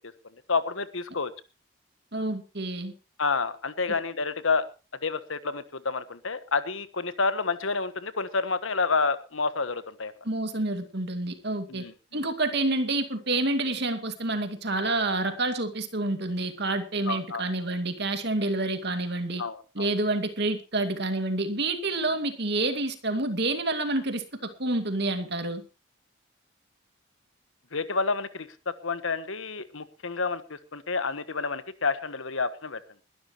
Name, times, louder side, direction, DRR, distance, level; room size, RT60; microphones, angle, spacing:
voice 1, 0.5-1.3 3.2-4.7 5.0-10.1 11.7-12.2 17.1-17.4 19.4-19.9 27.7-32.8, left 4 dB, 75° left, 13 dB, 1.3 m, -29 dB
voice 2, 2.1-2.9 10.2-19.4 19.7-25.6, right 2 dB, 55° right, 8 dB, 2.3 m, -28 dB
21.0 x 12.0 x 3.1 m, 0.31 s
head